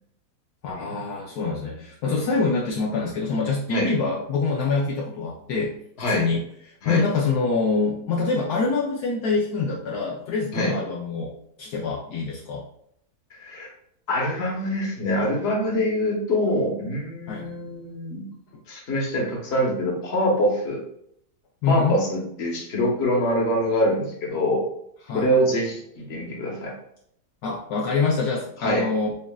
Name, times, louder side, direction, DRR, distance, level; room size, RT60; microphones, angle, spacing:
voice 1, 0.6-5.7 6.1-6.4 6.9-11.3 11.6-12.6 17.3-17.5 21.6-22.0 25.1-25.3 27.4-29.2, left 4 dB, 75° left, -2 dB, 1.1 m, -25 dB
voice 2, 6.0-6.3 6.8-7.0 10.5-10.7 13.4-13.7 14.1-18.3 18.7-20.8 21.6-24.6 25.1-26.7 28.6-28.9, equal, 45° left, -1 dB, 1.3 m, -24 dB
7.1 x 2.4 x 2.2 m, 0.71 s
omnidirectional pair, 1.8 m